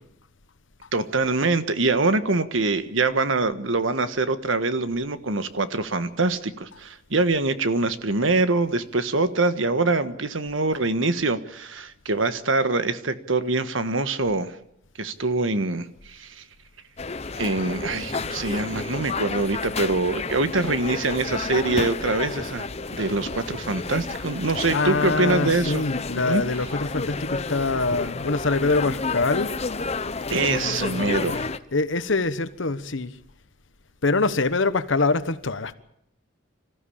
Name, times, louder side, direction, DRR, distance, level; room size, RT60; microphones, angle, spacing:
voice 1, 0.9-14.5 15.0-16.4 17.4-25.8 26.2-26.4 30.3-31.5, right 3 dB, 80° right, 1.5 m, -24 dB
sound 1, 17.0-31.6, left 3 dB, 30° left, 0.8 m, -31 dB
voice 2, 24.7-29.6 30.5-33.1 34.0-35.7, left 3 dB, 70° left, 1.2 m, -25 dB
26.0 x 15.0 x 8.7 m
head